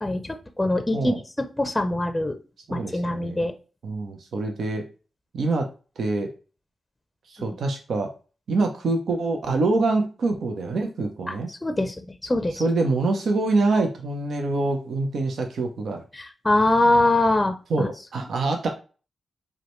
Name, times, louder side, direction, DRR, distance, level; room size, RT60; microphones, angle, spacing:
voice 1, 0.0-2.4 2.7-3.5 11.3-12.6 16.1-17.9, left 2 dB, 20° left, 7 dB, 0.5 m, -23 dB
voice 2, 2.7-3.4 3.8-4.8 5.3-5.7 6.0-6.3 7.3-8.1 8.5-11.5 12.6-16.0 17.7-18.7, right 3 dB, 70° right, 3 dB, 0.6 m, -25 dB
4.8 x 2.2 x 3.0 m, 0.35 s
supercardioid pair, 45°, 0 cm